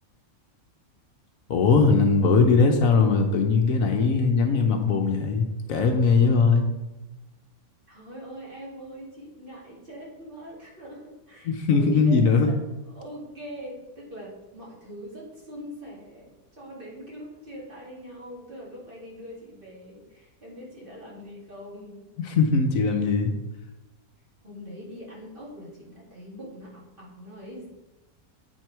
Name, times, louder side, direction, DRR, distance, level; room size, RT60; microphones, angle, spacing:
voice 1, 1.5-6.7 11.4-12.5 22.2-23.3, left 4 dB, 70° left, 4 dB, 1.1 m, -20 dB
voice 2, 7.9-12.6 12.9-22.1 24.4-27.7, equal, 35° right, -4 dB, 2.2 m, -42 dB
8.2 x 4.6 x 4.6 m, 1.0 s
omnidirectional pair, 1.6 m